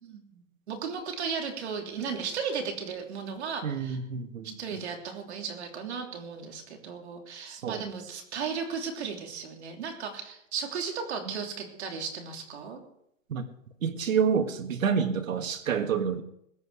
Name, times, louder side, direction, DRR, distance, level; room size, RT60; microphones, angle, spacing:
voice 1, 0.0-4.0 4.4-12.8, right 6 dB, 55° right, 3 dB, 3.3 m, -35 dB
voice 2, 3.6-4.8 7.5-7.8 13.3-13.5 13.8-16.2, right 7 dB, 85° right, 8 dB, 1.7 m, -28 dB
21.0 x 8.1 x 4.9 m, 0.75 s
hypercardioid pair, 165°, 39 cm